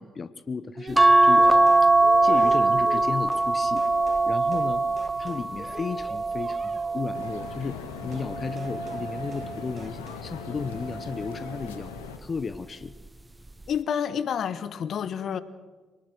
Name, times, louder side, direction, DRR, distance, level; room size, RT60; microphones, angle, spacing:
voice 1, 0.0-1.5 1.8-1.9 2.2-3.8 4.3-4.9 5.2-11.9 12.2-12.9, left 5 dB, 40° left, 0.9 m, -34 dB
sound 1, 0.8-3.5 3.8-4.3 4.5-4.7 5.0-7.1 8.1-8.3 8.6-9.1 9.3-9.5 9.8-10.3, right 4 dB, 40° right, 2.2 m, -44 dB
sound 2, 1.0-7.6 8.2-9.6 10.9-11.3 11.6-11.7, right 2 dB, 15° right, 1.0 m, -22 dB
sound 3, 7.1-12.2, left 7 dB, 85° left, 1.5 m, -40 dB
voice 2, 13.7-15.4, left 8 dB, 60° left, 1.2 m, -29 dB
24.5 x 19.5 x 6.1 m
hypercardioid pair, 45°, 0 cm